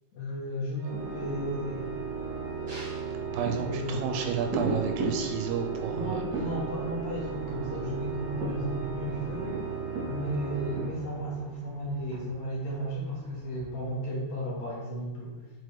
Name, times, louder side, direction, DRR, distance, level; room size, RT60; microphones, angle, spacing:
voice 1, 0.1-1.9 3.4-4.0 5.9-9.6 10.1-15.5, equal, 60° left, -5 dB, 2.1 m, -34 dB
Organ, 0.8-11.7, right 6 dB, 75° right, 1.6 m, -36 dB
Mostly Distant Fireworks, 2.7-14.3 14.7-14.8, right 2 dB, 55° right, 1.4 m, -39 dB
voice 2, 3.3-6.2, right 7 dB, 90° right, 4 dB, 2.5 m, -31 dB
6.4 x 4.5 x 3.3 m, 1.1 s
omnidirectional pair, 4.2 m